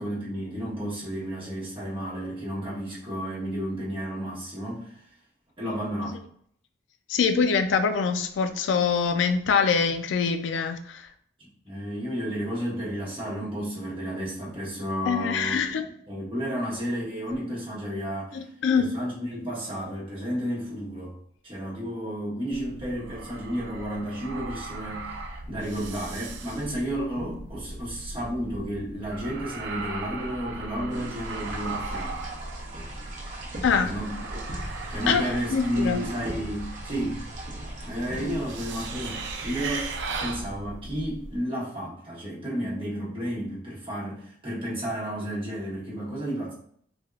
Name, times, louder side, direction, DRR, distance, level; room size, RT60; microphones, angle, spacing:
voice 1, 0.0-5.0 5.6-6.1 11.4-15.7 16.1-18.5 18.7-21.1 21.4-32.2 33.8-34.4 34.9-37.2 37.8-39.9 40.2-46.5, equal, 30° right, -7 dB, 1.4 m, -32 dB
voice 2, 7.1-11.1 15.1-15.9 18.3-18.9 33.6-33.9 35.1-36.0, left 5 dB, 80° left, 8 dB, 0.3 m, -24 dB
sound 1, 22.5-41.4, right 3 dB, 70° right, 0.5 m, -37 dB
sound 2, 30.9-39.9, right 1 dB, 45° right, 0.8 m, -40 dB
3.4 x 2.8 x 2.3 m, 0.64 s
head